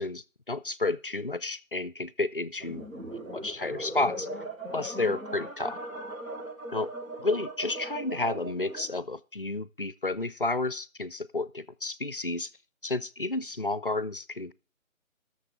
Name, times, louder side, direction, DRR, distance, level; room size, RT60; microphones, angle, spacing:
voice 1, 0.0-4.3 4.7-5.8 6.7-6.9 7.2-12.5 12.8-14.5, left 2 dB, 45° left, 17 dB, 0.4 m, -31 dB
sound 1, 2.6-9.0, right 1 dB, 80° right, 5.2 m, -39 dB
18.5 x 6.7 x 3.8 m, 0.35 s
figure-of-eight pair, 155°, 40 cm